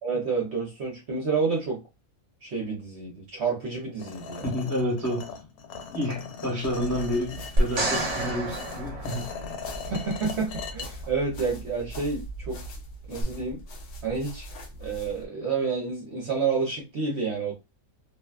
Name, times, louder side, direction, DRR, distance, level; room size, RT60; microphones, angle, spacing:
voice 1, 0.0-1.8 2.4-4.5 9.9-12.6 13.1-13.6 14.0-14.5 14.8-17.6, right 4 dB, 55° right, 0.9 m, -29 dB
sound 1, 4.0-10.9, left 6 dB, 85° left, 1.1 m, -40 dB
voice 2, 4.4-5.3 5.9-9.3, equal, 15° left, 0.9 m, -29 dB
sound 2, 6.6-15.3, right 1 dB, 60° left, 0.6 m, -41 dB
sound 3, 7.6-9.9 13.2-13.3, right 1 dB, 85° right, 0.3 m, -28 dB
2.7 x 2.2 x 2.2 m
omnidirectional pair, 1.5 m